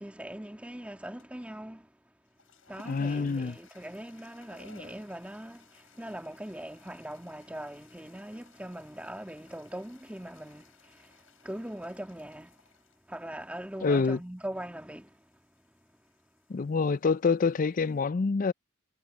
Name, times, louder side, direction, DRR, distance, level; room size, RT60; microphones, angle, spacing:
voice 1, 0.0-1.9 2.7-12.7 13.1-15.3, right 1 dB, 5° right, 1.9 m, -41 dB
sound 1, 1.2-1.5 2.2-18.0, left 5 dB, 70° left, 7.6 m, -61 dB
voice 2, 2.9-3.5 13.8-14.2 16.5-18.5, left 4 dB, 40° left, 0.4 m, -26 dB
head